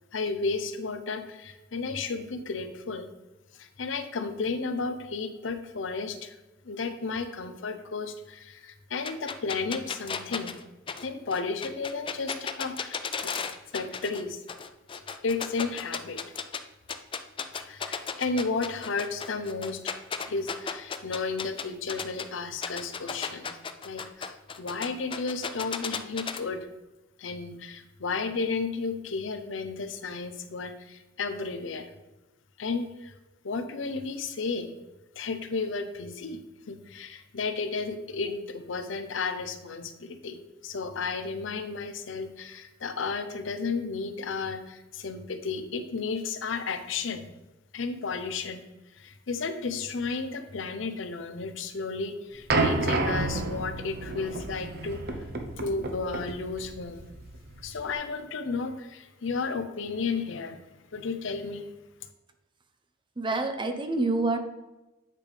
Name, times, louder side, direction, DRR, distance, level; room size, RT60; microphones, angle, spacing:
voice 1, 0.1-3.1 3.5-6.3 6.6-10.6 11.0-13.3 13.7-14.4 15.2-16.2 17.6-20.0 20.3-23.6 23.8-26.7 27.2-31.9 32.6-33.1 33.4-34.7 35.2-36.4 36.7-47.3 47.7-48.6 48.9-55.1 55.6-57.1 57.6-60.6 60.9-61.7, left 4 dB, 80° left, 9 dB, 0.7 m, -33 dB
sound 1, 9.0-14.2 14.5-16.6 16.9-22.2 22.6-26.4, left 6 dB, 25° left, 0.4 m, -34 dB
sound 2, 52.5-57.9, right 2 dB, 55° right, 0.8 m, -30 dB
voice 2, 63.2-64.4, right 3 dB, 25° right, 7 dB, 0.6 m, -27 dB
8.4 x 3.4 x 4.9 m, 1.0 s
head